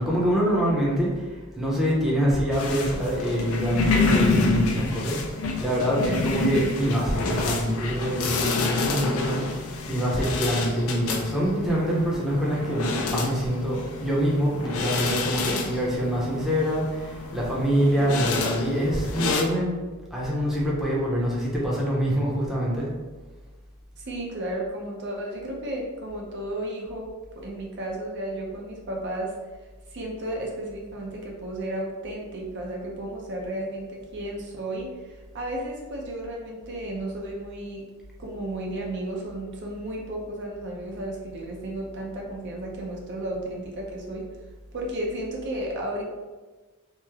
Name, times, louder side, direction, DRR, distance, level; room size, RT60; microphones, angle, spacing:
voice 1, 0.0-5.2 5.6-19.7 20.1-22.9, equal, ahead, -6 dB, 0.6 m, -25 dB
sound 1, 2.5-19.4, left 3 dB, 75° left, 0.4 m, -28 dB
voice 2, 24.0-29.4 29.9-37.9 38.2-44.3 44.7-46.0, right 1 dB, 55° right, -1 dB, 0.5 m, -33 dB
3.0 x 2.0 x 3.4 m, 1.3 s
head